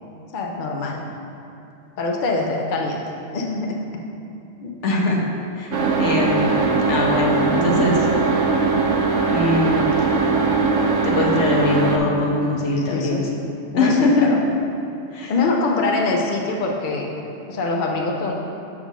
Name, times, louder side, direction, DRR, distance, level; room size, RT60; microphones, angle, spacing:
voice 1, 0.3-1.0 2.0-3.0 3.3-3.9 4.6-4.8 12.8-13.3 13.7-14.4 15.3-17.1 17.5-18.3, left 3 dB, 50° left, 0 dB, 0.8 m, -24 dB
voice 2, 4.8-5.2 5.6-5.7 6.0-8.1 9.3-9.8 11.0-13.2 13.7-14.3 15.1-15.3, left 2 dB, 75° left, -2 dB, 1.2 m, -21 dB
sound 1, 5.7-12.0, right 4 dB, 90° right, 1.0 m, -20 dB
6.8 x 3.7 x 6.1 m, 2.8 s
omnidirectional pair, 1.2 m